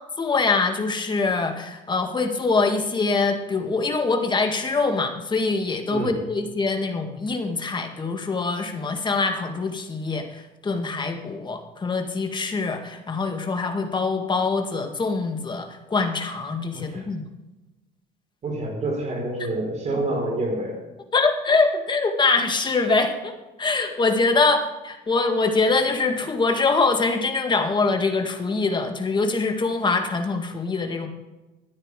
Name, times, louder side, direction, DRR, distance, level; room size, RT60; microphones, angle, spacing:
voice 1, 0.2-17.2 21.1-23.3 23.6-31.1, left 3 dB, 25° left, 5 dB, 1.9 m, -24 dB
voice 2, 16.7-17.1 18.4-20.8, right 2 dB, 40° right, 1 dB, 4.5 m, -27 dB
13.5 x 9.7 x 4.9 m, 1.1 s
cardioid pair, 110°, 17 cm